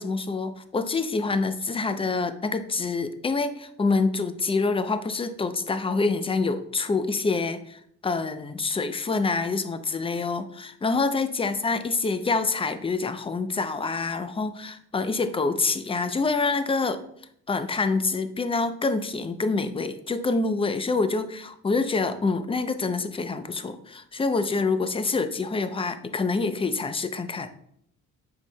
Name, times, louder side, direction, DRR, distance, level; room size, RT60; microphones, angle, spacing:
voice 1, 0.0-17.0 17.5-27.5, left 3 dB, 20° left, 10 dB, 0.6 m, -26 dB
7.8 x 5.5 x 2.2 m, 0.69 s
cardioid pair, 90°, 30 cm